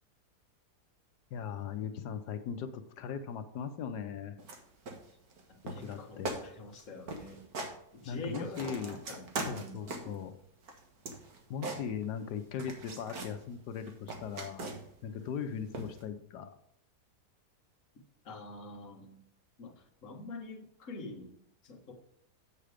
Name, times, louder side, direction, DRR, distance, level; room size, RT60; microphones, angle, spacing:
voice 1, 1.3-4.4 5.6-6.4 8.0-9.0 9.4-10.4 11.5-14.7 15.0-16.6, left 7 dB, 75° left, 9 dB, 1.3 m, -39 dB
sound 1, 4.4-4.6 4.9-5.4 5.7-6.0 6.2-6.4 6.7-6.8 7.1-7.7 8.1-10.2 10.6-12.3 12.6-13.4 13.8-15.0 15.7-16.0, right 2 dB, 60° right, 1.9 m, -40 dB
voice 2, 5.7-7.4 7.9-9.8 18.2-19.2 19.6-19.7 20.0-21.3 21.6-21.9, left 2 dB, 50° left, 1 dB, 1.7 m, -45 dB
7.6 x 7.0 x 5.0 m, 0.75 s
omnidirectional pair, 1.8 m